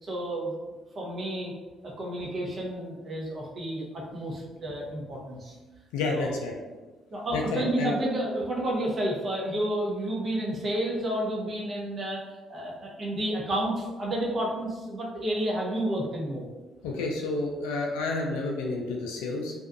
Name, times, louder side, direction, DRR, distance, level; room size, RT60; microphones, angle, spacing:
voice 1, 0.0-0.6 0.9-1.5 1.8-5.5 6.1-6.4 7.1-16.5, right 1 dB, 45° right, -2 dB, 0.8 m, -31 dB
voice 2, 5.9-6.5 7.3-7.9 16.8-19.5, left 3 dB, 75° left, 0 dB, 0.3 m, -30 dB
2.6 x 2.3 x 2.4 m, 1.2 s
hypercardioid pair, 50°, 0 cm